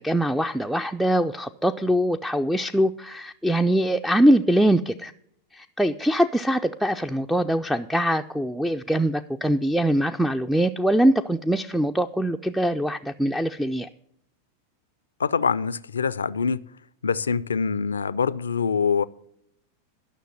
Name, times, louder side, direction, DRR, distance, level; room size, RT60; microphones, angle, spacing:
voice 1, 0.0-5.1 5.5-13.9, right 1 dB, ahead, 0.4 m, -23 dB
voice 2, 15.2-16.7 17.0-19.0, left 6 dB, 70° left, 0.4 m, -24 dB
12.0 x 6.3 x 7.8 m
figure-of-eight pair, 90°, 0 cm